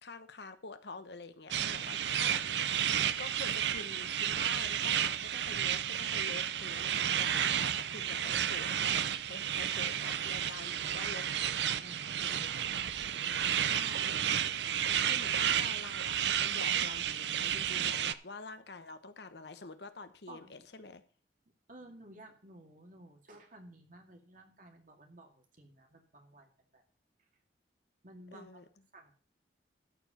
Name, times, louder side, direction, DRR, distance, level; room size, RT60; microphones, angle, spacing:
voice 1, 0.0-2.8 3.2-8.9 9.3-11.2 13.6-14.2 15.0-21.0 28.3-28.6, left 3 dB, 70° left, 10 dB, 1.1 m, -47 dB
sound 1, 1.5-18.1, right 9 dB, 75° right, 0.6 m, -32 dB
voice 2, 11.0-11.3 11.8-13.8 20.3-20.5 20.8-20.9 21.7-26.8 28.0-28.7 28.9-29.1, right 1 dB, 45° right, 3 dB, 2.3 m, -54 dB
13.5 x 4.8 x 7.1 m, 0.41 s
head